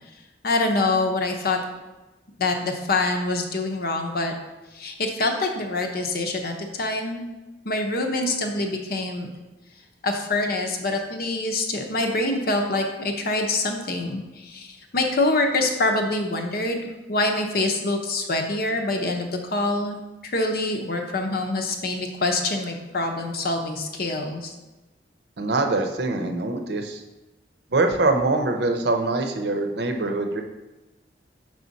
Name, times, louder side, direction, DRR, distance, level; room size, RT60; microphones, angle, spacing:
voice 1, 0.4-1.6 2.4-4.3 4.7-7.2 7.6-9.3 10.0-16.8 17.1-24.5, left 2 dB, 60° left, 3 dB, 0.8 m, -25 dB
voice 2, 25.4-27.0 27.7-30.4, right 2 dB, 65° right, 5 dB, 0.7 m, -23 dB
6.1 x 4.9 x 4.0 m, 1.1 s
head